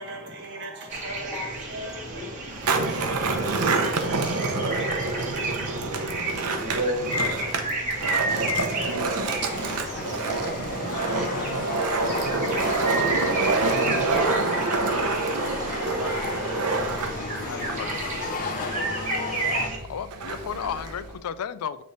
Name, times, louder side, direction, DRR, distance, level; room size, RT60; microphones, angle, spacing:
voice 1, 0.0-1.5 6.5-7.1, right 1 dB, 55° right, 1.5 m, -33 dB
sound 1, 0.9-19.8, right 2 dB, 35° right, 1.3 m, -32 dB
voice 2, 1.0-2.3 3.9-5.5 8.0-12.9, left 1 dB, 5° right, 1.2 m, -43 dB
Skateboard, 2.5-21.2, right 3 dB, 85° right, 0.8 m, -27 dB
sound 2, 9.3-19.7, left 4 dB, 40° left, 0.8 m, -34 dB
voice 3, 16.0-16.6 17.4-18.7 19.8-21.8, left 8 dB, 75° left, 0.4 m, -35 dB
8.4 x 3.3 x 3.9 m
head